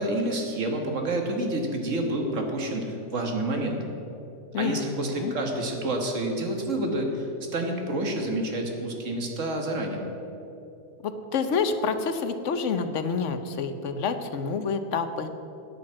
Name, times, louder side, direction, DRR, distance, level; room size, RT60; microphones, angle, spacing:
voice 1, 0.0-3.8 4.6-7.3 7.5-10.0, right 1 dB, 80° right, 3 dB, 1.8 m, -28 dB
voice 2, 4.5-5.3 11.0-15.3, left 5 dB, 75° left, 9 dB, 1.1 m, -28 dB
9.7 x 8.9 x 7.5 m, 2.8 s
omnidirectional pair, 1.3 m